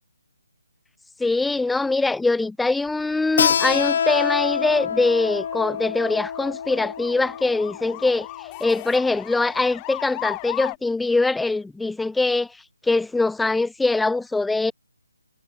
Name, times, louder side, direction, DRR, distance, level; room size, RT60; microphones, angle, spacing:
voice 1, 1.2-8.3 8.6-12.5 12.8-14.7, left 3 dB, 5° left, 0.8 m, -22 dB
sound 1, 2.9-10.8, left 32 dB, 20° left, 1.7 m, -38 dB
Keyboard (musical), 3.4-8.6, left 7 dB, 45° left, 2.1 m, -26 dB
figure-of-eight pair, 155°, 0 cm